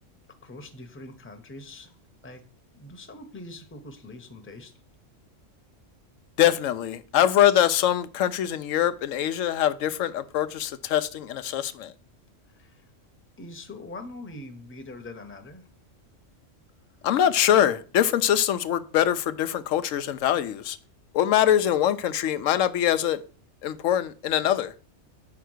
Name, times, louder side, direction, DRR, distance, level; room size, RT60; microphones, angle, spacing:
voice 1, 0.4-2.0 2.2-2.4 2.7-4.7 12.5-12.9 13.4-15.7, left 2 dB, 10° left, 0.7 m, -43 dB
voice 2, 6.4-11.9 17.0-20.8 21.1-23.2 23.6-24.7, left 11 dB, 85° left, 1.0 m, -23 dB
5.8 x 4.5 x 6.3 m
omnidirectional pair, 1.3 m